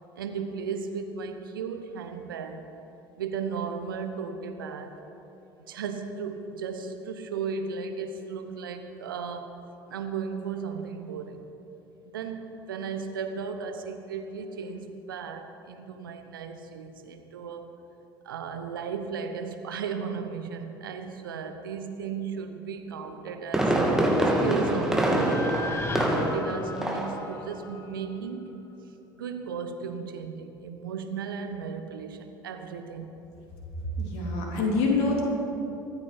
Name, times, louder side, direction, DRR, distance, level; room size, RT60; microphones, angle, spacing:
voice 1, 0.1-2.7 3.2-5.0 5.7-9.6 9.9-11.4 12.1-17.7 18.2-23.8 24.4-28.6 29.2-33.1, right 6 dB, 80° right, 7 dB, 1.2 m, -35 dB
Fireworks, 23.1-26.5 26.8-27.2 27.5-27.6, right 1 dB, 5° right, 2.5 m, -24 dB
sound 1, 24.3-28.4, left 3 dB, 20° left, 1.4 m, -37 dB
voice 2, 34.0-35.2, left 3 dB, 60° left, -1 dB, 3.2 m, -25 dB
24.0 x 9.5 x 5.2 m, 3.0 s
figure-of-eight pair, 65°, 11 cm